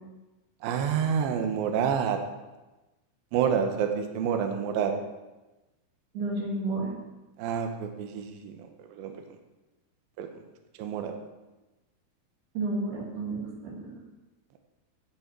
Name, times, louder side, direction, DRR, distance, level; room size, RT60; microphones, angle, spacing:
voice 1, 0.6-2.2 3.3-4.9 7.4-9.4 10.2-10.4 10.8-11.1, right 7 dB, 80° right, 5 dB, 2.1 m, -28 dB
voice 2, 6.1-6.9 12.5-14.0, right 2 dB, 60° right, -3 dB, 4.0 m, -31 dB
16.0 x 6.2 x 4.6 m, 1.1 s
omnidirectional pair, 5.6 m